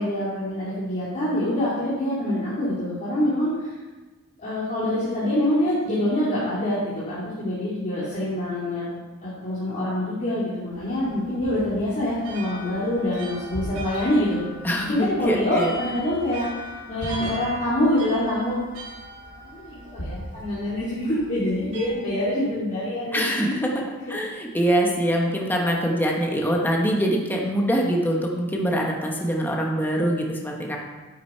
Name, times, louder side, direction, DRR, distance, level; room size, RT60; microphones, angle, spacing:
voice 1, 0.0-3.8 4.4-8.9 9.2-14.4 14.8-16.4 16.9-18.6 19.3-23.5, left 1 dB, 35° left, -11 dB, 2.7 m, -25 dB
sound 1, 10.7-21.9, equal, 85° right, 3.1 m, -40 dB
sound 2, 11.4-16.4 16.9-19.3 19.9-22.0 22.4-22.5, equal, 80° left, 2.1 m, -40 dB
voice 2, 14.6-15.7 23.1-23.7 24.1-30.8, equal, 10° left, -1 dB, 1.1 m, -24 dB
10.0 x 8.0 x 4.4 m, 1.2 s
head